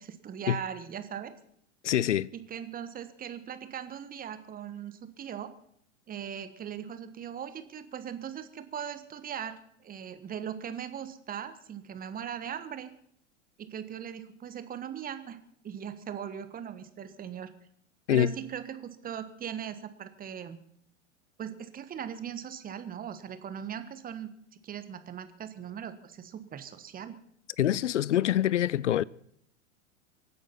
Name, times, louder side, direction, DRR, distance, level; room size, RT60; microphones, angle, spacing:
voice 1, 0.0-1.3 2.3-5.5 6.1-12.9 13.6-17.5 18.1-20.6 21.4-24.3 24.6-27.2, right 8 dB, 25° right, 1.5 m, -39 dB
voice 2, 1.8-2.3 18.1-18.3 27.6-29.0, left 11 dB, 75° left, 0.5 m, -25 dB
24.5 x 9.4 x 5.8 m
figure-of-eight pair, 95°, 36 cm